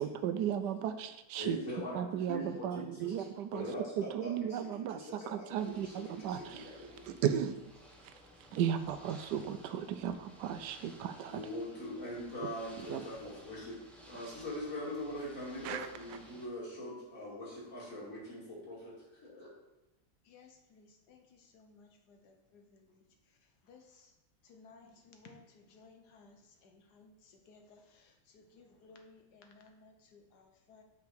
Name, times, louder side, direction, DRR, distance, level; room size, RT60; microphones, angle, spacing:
voice 1, 0.0-1.6 1.9-3.7 4.0-6.7 7.1-7.6 8.5-11.4 12.9-13.0 15.6-15.9, right 9 dB, 85° right, 10 dB, 1.2 m, -35 dB
voice 2, 1.4-3.3 3.5-7.2 11.3-18.9 19.2-19.5, equal, 55° left, -6 dB, 2.7 m, -42 dB
Ocean / Boat Water vehicle, 5.5-16.5, equal, ahead, 0.7 m, -57 dB
voice 3, 8.1-8.6 10.8-11.5 20.2-23.0 23.6-24.1 24.4-30.8, left 4 dB, 75° left, 4 dB, 1.5 m, -60 dB
5.7 x 5.2 x 4.6 m, 0.95 s
omnidirectional pair, 1.8 m